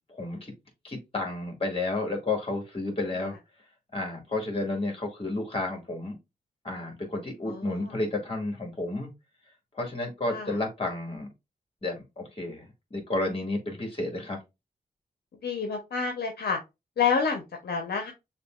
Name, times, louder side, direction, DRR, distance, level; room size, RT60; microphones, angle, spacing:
voice 1, 0.1-0.5 0.8-3.3 3.9-6.2 6.6-9.1 9.7-11.3 11.8-14.4, left 2 dB, 35° left, 2 dB, 2.1 m, -31 dB
voice 2, 7.4-7.9 10.3-10.5 15.4-16.6 17.0-18.1, left 5 dB, 75° left, 3 dB, 0.8 m, -28 dB
6.6 x 2.4 x 2.4 m, 0.23 s
cardioid pair, 65°, 17 cm